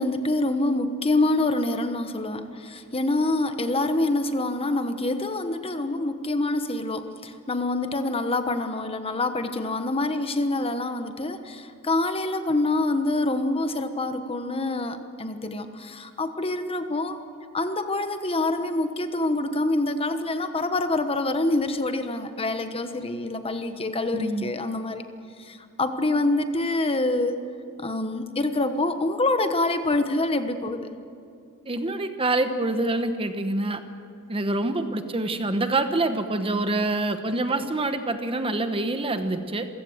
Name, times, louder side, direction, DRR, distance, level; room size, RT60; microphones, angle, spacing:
voice 1, 0.0-17.2 17.5-25.0 25.4-27.3 27.8-30.9, left 2 dB, 25° left, 8 dB, 1.1 m, -26 dB
voice 2, 24.1-24.5 31.7-33.8 34.3-39.7, right 2 dB, 25° right, 8 dB, 1.1 m, -26 dB
27.5 x 16.0 x 7.9 m, 2.5 s
head